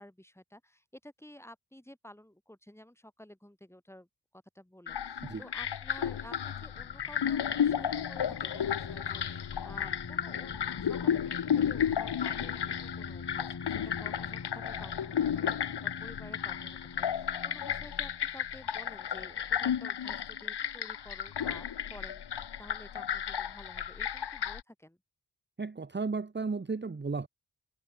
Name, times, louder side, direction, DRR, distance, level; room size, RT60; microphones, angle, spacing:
voice 1, 0.0-4.1 4.3-25.0, left 1 dB, 5° left, 4.2 m, -52 dB
sound 1, 4.9-24.6, left 8 dB, 85° left, 1.1 m, -33 dB
sound 2, 6.3-19.5, left 5 dB, 55° left, 3.0 m, -45 dB
voice 2, 25.6-27.3, right 4 dB, 25° right, 1.1 m, -34 dB
wide cardioid pair, 100°, 39 cm